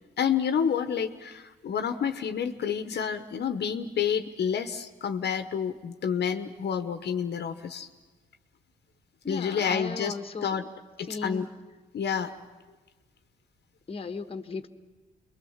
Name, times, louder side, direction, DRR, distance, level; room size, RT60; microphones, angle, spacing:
voice 1, 0.2-7.9 9.3-10.1 10.4-10.6 11.0-11.5 11.9-12.3, left 7 dB, 60° left, 7 dB, 1.1 m, -29 dB
voice 2, 9.2-10.7 11.1-11.5 13.9-14.7, left 4 dB, 30° left, 8 dB, 1.3 m, -36 dB
27.0 x 22.0 x 7.3 m, 1.3 s
cardioid pair, 90°, 20 cm